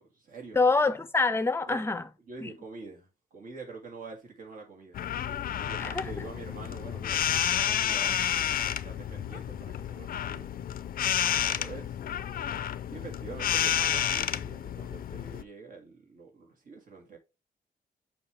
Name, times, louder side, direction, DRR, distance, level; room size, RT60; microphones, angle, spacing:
voice 1, 0.0-0.7 1.7-1.8 2.3-5.0 5.6-8.2 8.6-10.5 11.4-12.0 12.9-17.2, right 4 dB, 55° right, 2.6 m, -46 dB
voice 2, 0.6-2.0 2.4-2.5 5.8-6.1, left 3 dB, 15° left, 0.7 m, -25 dB
sound 1, 4.9-15.4, left 10 dB, 60° left, 0.5 m, -30 dB
6.9 x 5.7 x 3.4 m
wide cardioid pair, 175°, 16 cm